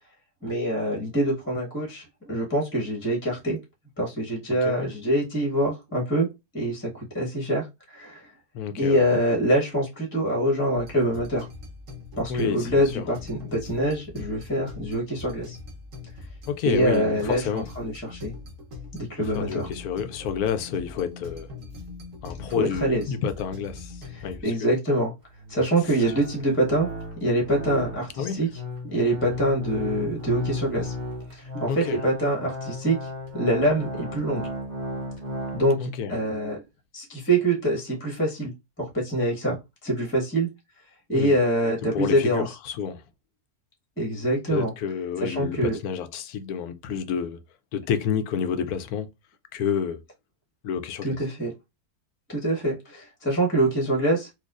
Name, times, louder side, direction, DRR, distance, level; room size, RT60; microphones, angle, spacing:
voice 1, 0.4-3.6 4.0-6.3 6.5-7.7 7.9-8.3 8.8-11.5 12.2-15.6 16.6-18.3 18.9-19.7 22.6-23.0 24.1-25.1 25.5-26.9 27.2-28.5 28.8-30.9 31.3-34.5 35.5-36.6 36.9-40.5 41.1-42.5 44.0-44.7 45.2-45.8 51.0-51.5 52.3-54.3, right 1 dB, 10° left, 0.9 m, -25 dB
voice 2, 8.5-9.0 12.3-13.0 16.5-17.7 19.3-21.5 22.2-24.7 28.2-28.4 31.7-32.0 35.8-36.1 41.1-41.3 41.9-43.0 44.5-47.4 47.7-49.1 49.5-50.0 50.6-51.2, left 7 dB, 75° left, 1.0 m, -29 dB
sound 1, 10.7-24.4, left 3 dB, 60° right, 1.2 m, -42 dB
sound 2, 25.2-35.7, left 1 dB, 35° right, 0.8 m, -35 dB
4.5 x 2.4 x 2.4 m
omnidirectional pair, 1.7 m